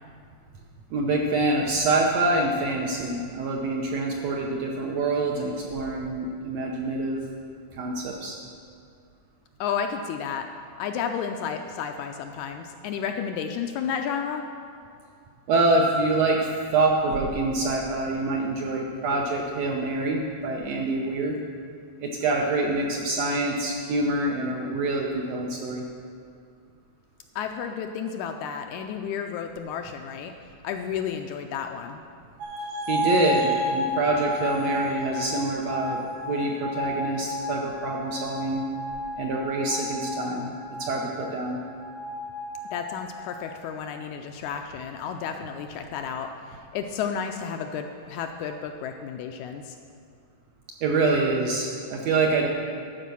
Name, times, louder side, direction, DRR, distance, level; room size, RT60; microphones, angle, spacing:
voice 1, 0.9-7.2 7.7-8.4 15.5-21.4 22.0-25.8 32.9-38.6 39.2-40.5 40.8-41.6 50.8-52.5, right 2 dB, 75° right, 0 dB, 1.6 m, -26 dB
voice 2, 9.6-10.5 10.8-14.5 27.4-30.3 30.6-32.0 42.7-46.3 46.7-49.8, left 7 dB, 80° left, 5 dB, 1.8 m, -32 dB
sound 1, 32.4-43.5, left 2 dB, 90° right, 2.6 m, -32 dB
12.0 x 5.1 x 6.9 m, 2.3 s
omnidirectional pair, 3.7 m